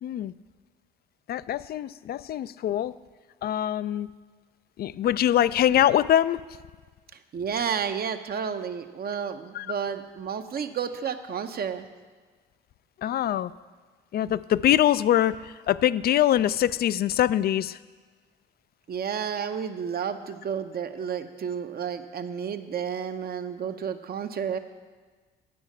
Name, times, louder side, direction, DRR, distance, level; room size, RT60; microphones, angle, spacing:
voice 1, 0.0-0.3 1.3-2.9 3.4-4.1 4.8-6.4 9.5-9.7 13.0-13.5 14.1-17.8, left 11 dB, 50° left, 17 dB, 0.4 m, -23 dB
voice 2, 7.3-11.9 18.9-24.6, right 7 dB, 45° right, 8 dB, 0.8 m, -31 dB
10.0 x 6.4 x 7.3 m, 1.4 s
supercardioid pair, 60°, 21 cm